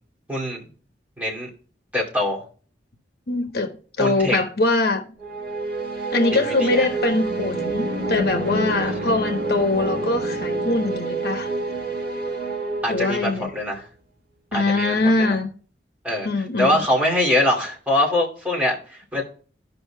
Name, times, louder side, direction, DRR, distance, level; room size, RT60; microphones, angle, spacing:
voice 1, 0.3-0.6 1.2-1.5 1.9-2.4 4.0-4.4 6.4-6.8 12.8-13.8 14.5-15.3 16.0-16.3 16.6-19.2, left 1 dB, 10° right, 2.6 m, -23 dB
voice 2, 3.3-3.7 4.0-5.1 6.1-11.5 12.9-13.5 14.5-15.5 16.2-16.9, left 2 dB, 60° left, 1.0 m, -22 dB
sound 1, 5.2-13.6, right 2 dB, 55° right, 1.9 m, -28 dB
15.5 x 5.4 x 2.2 m
head